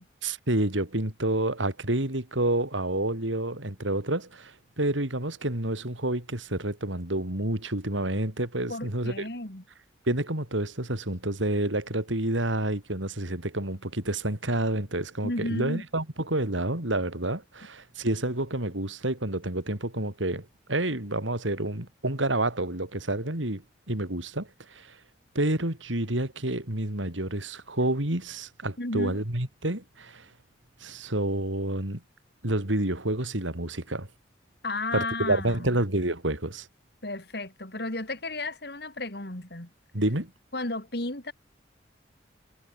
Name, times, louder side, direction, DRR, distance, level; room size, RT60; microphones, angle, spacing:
voice 1, 0.2-9.2 10.1-23.6 23.9-24.9 25.3-30.3 30.8-32.0 32.4-34.1 34.9-36.7 39.9-40.3, right 1 dB, 90° right, 4.2 m, -29 dB
voice 2, 8.7-9.6 15.2-15.8 28.8-29.2 34.6-35.8 37.0-39.7 40.5-41.3, left 2 dB, 55° left, 3.5 m, -33 dB
head